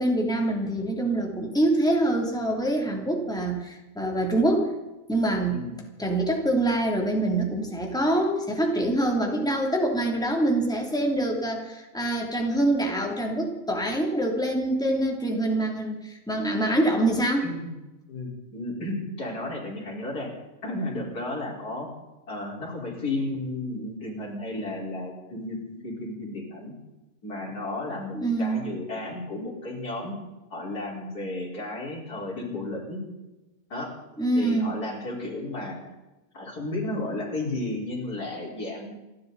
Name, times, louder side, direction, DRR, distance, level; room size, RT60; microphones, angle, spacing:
voice 1, 0.0-4.7 5.1-5.6 6.0-17.5 28.1-28.6 34.2-34.7, right 1 dB, ahead, 0 dB, 2.9 m, -25 dB
voice 2, 5.5-5.8 17.4-17.7 18.1-20.3 20.6-21.9 22.3-26.7 27.2-30.2 30.5-33.0 33.7-33.9 34.3-35.8 36.3-38.9, left 2 dB, 85° left, -3 dB, 5.1 m, -33 dB
28.5 x 12.5 x 4.1 m, 1.0 s
omnidirectional pair, 1.6 m